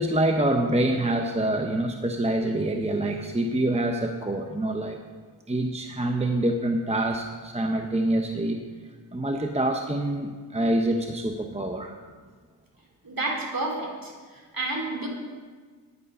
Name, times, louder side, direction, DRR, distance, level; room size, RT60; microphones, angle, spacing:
voice 1, 0.0-5.0 5.5-8.6 9.1-11.9, right 1 dB, 15° right, 4 dB, 0.8 m, -26 dB
voice 2, 13.0-14.1 14.5-15.1, right 2 dB, 45° right, 0 dB, 3.3 m, -29 dB
9.7 x 9.5 x 5.5 m, 1.5 s
cardioid pair, 40°, 46 cm